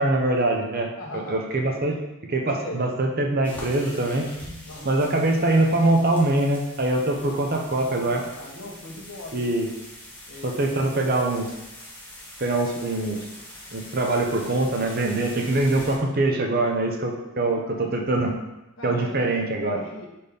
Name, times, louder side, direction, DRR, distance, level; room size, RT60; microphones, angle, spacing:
voice 1, 0.0-2.0 2.3-4.3 4.8-8.2 9.3-9.7 10.4-11.5 12.4-13.2 13.7-18.4 18.8-19.8, right 2 dB, 45° right, 2 dB, 0.8 m, -23 dB
voice 2, 1.0-1.5 2.5-2.8 4.7-5.2 7.7-9.5 10.3-10.7 17.4-18.0 18.8-19.3 19.6-20.1, left 1 dB, 60° left, -3 dB, 1.5 m, -40 dB
sound 1, 3.4-16.0, left 1 dB, 5° left, 1.1 m, -43 dB
5.0 x 4.3 x 5.2 m, 0.96 s
head